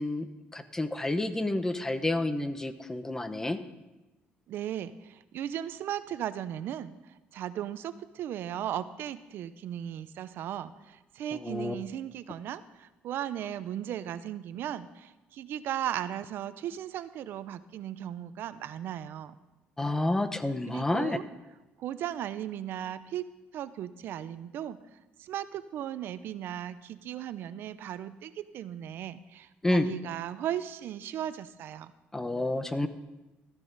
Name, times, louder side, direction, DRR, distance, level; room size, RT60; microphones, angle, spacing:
voice 1, 0.0-3.6 11.3-11.8 19.8-21.2 29.6-29.9 32.1-32.9, left 2 dB, 15° left, 10 dB, 0.9 m, -29 dB
voice 2, 4.5-19.3 20.7-21.2 21.8-23.3 23.5-24.8 25.2-31.9, right 11 dB, 70° right, 13 dB, 0.6 m, -36 dB
14.5 x 14.0 x 4.0 m, 1.0 s
cardioid pair, 115°, 4 cm